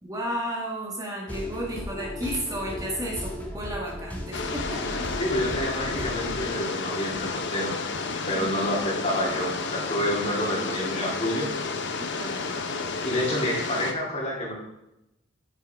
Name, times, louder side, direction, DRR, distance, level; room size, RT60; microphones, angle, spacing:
voice 1, 0.0-5.1 8.3-8.7 12.0-12.5, equal, 20° right, -2 dB, 1.7 m, -33 dB
sound 1, 1.3-6.5, left 1 dB, 10° left, 1.5 m, -36 dB
sound 2, 4.3-13.9, left 4 dB, 65° left, 1.0 m, -31 dB
voice 2, 5.2-7.7 8.3-11.5 13.0-14.5, left 1 dB, 35° left, -3 dB, 3.2 m, -28 dB
9.6 x 9.2 x 3.6 m, 0.86 s
head